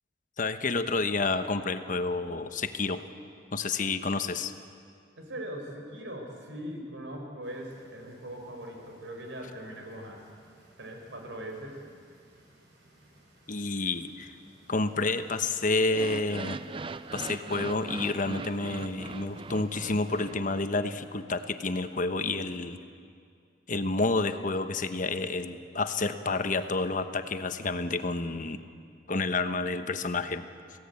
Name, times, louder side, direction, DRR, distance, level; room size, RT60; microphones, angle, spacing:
voice 1, 0.4-3.0 3.5-4.5 13.5-14.3 14.7-16.6 17.1-22.8 23.7-28.6 29.1-30.5, left 3 dB, 45° left, 9 dB, 1.1 m, -29 dB
voice 2, 5.2-10.2 10.8-11.8, right 1 dB, 85° right, 2 dB, 5.1 m, -40 dB
sound 1, 7.4-20.2, right 1 dB, 65° right, 7.1 m, -60 dB
sound 2, 15.8-21.0, right 3 dB, 30° right, 0.5 m, -40 dB
27.0 x 17.0 x 8.4 m, 2.3 s
head